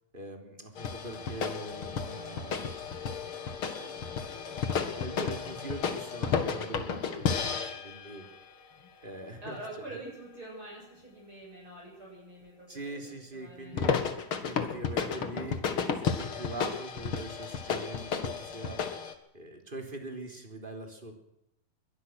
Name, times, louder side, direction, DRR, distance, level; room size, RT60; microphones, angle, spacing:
voice 1, 0.1-2.7 3.7-4.3 4.7-8.3 9.0-9.6 12.7-14.0 14.4-18.8 19.3-21.1, right 1 dB, 15° right, 4 dB, 3.1 m, -42 dB
sound 1, 0.8-8.4 13.7-19.1, left 6 dB, 45° left, 1.9 m, -33 dB
voice 2, 9.4-13.0 13.3-13.8, right 1 dB, 30° right, -3 dB, 8.2 m, -45 dB
22.5 x 19.0 x 6.3 m, 0.81 s
omnidirectional pair, 4.5 m